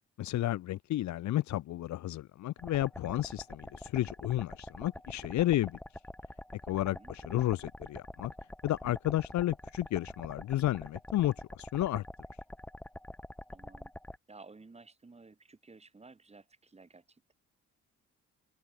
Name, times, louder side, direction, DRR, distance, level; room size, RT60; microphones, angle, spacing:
voice 1, 0.2-5.8 6.7-8.3 8.6-12.0, left 14 dB, 65° left, 0.8 m, -32 dB
sound 1, 2.6-14.2, left 1 dB, 5° left, 2.1 m, -46 dB
voice 2, 6.7-7.1 13.5-13.9 14.3-17.3, right 3 dB, 20° right, 2.9 m, -55 dB
open air
cardioid pair, 90°, 30 cm